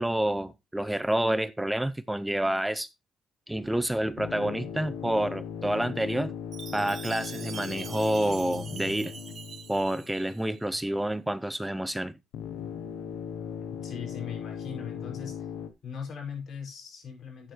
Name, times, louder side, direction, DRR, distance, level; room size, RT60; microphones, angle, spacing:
voice 1, 0.0-2.9 3.5-6.3 6.7-9.1 9.7-12.1, right 1 dB, 5° right, 0.6 m, -28 dB
sound 1, 4.2-10.5 12.3-15.7, left 8 dB, 90° left, 1.0 m, -38 dB
Chime, 6.5-10.6, right 7 dB, 55° right, 1.1 m, -44 dB
voice 2, 13.8-15.5 15.8-17.5, left 7 dB, 65° left, 5.8 m, -39 dB
11.5 x 9.1 x 3.1 m
cardioid pair, 90°, 0 cm